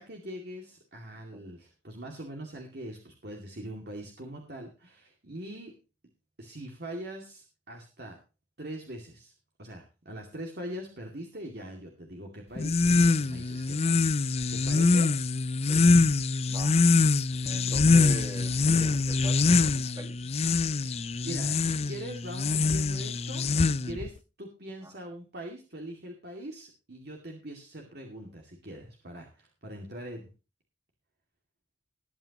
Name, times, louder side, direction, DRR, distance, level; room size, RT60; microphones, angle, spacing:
voice 1, 0.0-5.7 6.4-8.2 8.6-9.3 9.6-14.2 14.5-15.1 20.9-30.3, right 1 dB, 55° right, 1 dB, 2.4 m, -42 dB
sound 1, 12.6-24.1, left 3 dB, 30° left, 0.5 m, -24 dB
voice 2, 16.5-16.8 17.4-20.3 24.8-24.9, right 1 dB, 15° right, 7 dB, 1.8 m, -43 dB
20.0 x 8.5 x 3.0 m, 0.32 s
head